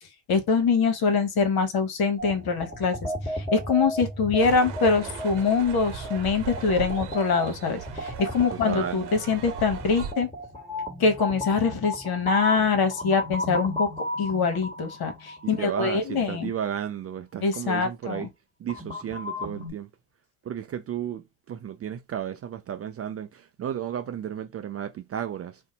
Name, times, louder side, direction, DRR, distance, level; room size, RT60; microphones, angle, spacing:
voice 1, 0.3-10.3 11.0-13.9 14.2-16.5 17.4-18.3, left 5 dB, 50° left, 1.1 m, -24 dB
sound 1, 2.2-15.9 18.6-19.7, left 1 dB, 10° left, 1.6 m, -34 dB
sound 2, 4.4-10.1, right 8 dB, 55° right, 1.0 m, -39 dB
voice 2, 8.5-9.1 15.4-18.3 18.6-19.9 20.4-25.6, right 9 dB, 30° right, 0.5 m, -33 dB
2.5 x 2.2 x 3.9 m
hypercardioid pair, 55°, 49 cm